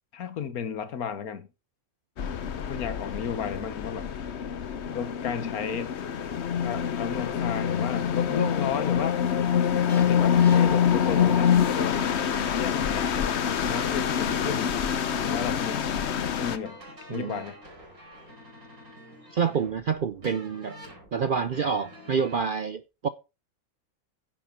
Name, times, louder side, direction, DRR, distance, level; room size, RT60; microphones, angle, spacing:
voice 1, 0.1-1.5 2.7-4.1 4.9-6.0 6.6-9.2 9.9-12.0 12.6-13.3 13.6-14.8 15.2-15.9 16.4-16.8 17.1-17.6, left 7 dB, 80° left, 1.6 m, -33 dB
sound 1, 2.2-16.6, left 8 dB, 55° left, 1.0 m, -25 dB
sound 2, 4.9-22.4, equal, 75° right, 5.3 m, -48 dB
voice 2, 17.1-17.4 19.3-20.8 21.1-23.1, right 6 dB, 60° right, 0.5 m, -27 dB
10.5 x 7.8 x 4.5 m
omnidirectional pair, 1.5 m